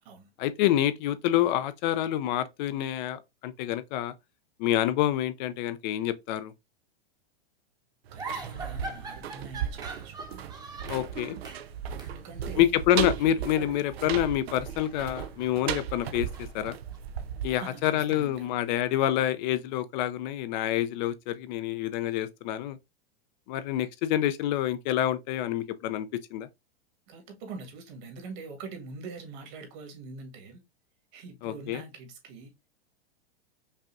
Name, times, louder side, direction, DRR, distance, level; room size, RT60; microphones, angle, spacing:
voice 1, 0.4-4.1 4.6-6.5 10.9-11.4 12.6-16.3 16.5-16.8 17.4-22.8 23.5-26.5 31.4-31.8, left 12 dB, 50° left, 0.5 m, -27 dB
voice 2, 8.1-10.1 12.0-12.8 17.5-18.5 27.1-30.6 31.1-32.5, right 4 dB, 50° right, 1.8 m, -44 dB
sound 1, 8.1-18.9 19.2-19.3, right 9 dB, 85° right, 0.6 m, -36 dB
Woman Laughing, 8.2-11.1 11.4-11.7 12.0-12.2 13.1-14.3 14.6-17.0, right 3 dB, 15° right, 0.8 m, -43 dB
5.4 x 2.5 x 2.5 m
hypercardioid pair, 125°, 30 cm